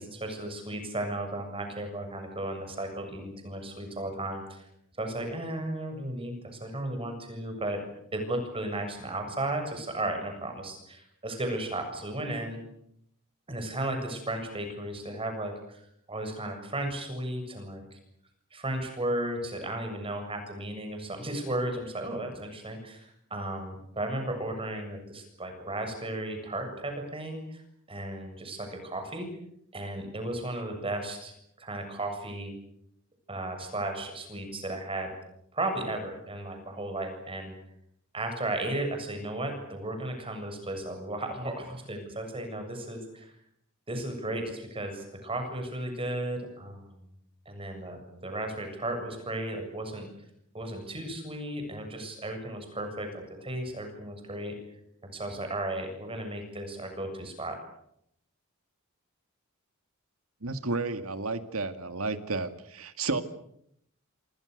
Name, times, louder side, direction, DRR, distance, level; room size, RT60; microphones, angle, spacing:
voice 1, 0.0-4.6 5.0-7.8 8.1-12.6 13.5-18.0 18.5-27.6 27.9-29.3 29.7-31.3 31.6-32.5 33.3-35.1 35.5-37.5 38.1-43.3 43.9-47.0 47.5-50.1 50.5-54.6 55.0-57.6, right 1 dB, 25° right, 5 dB, 7.4 m, -35 dB
voice 2, 60.4-63.2, right 3 dB, 90° right, 10 dB, 2.1 m, -32 dB
28.0 x 27.5 x 6.7 m, 0.73 s
head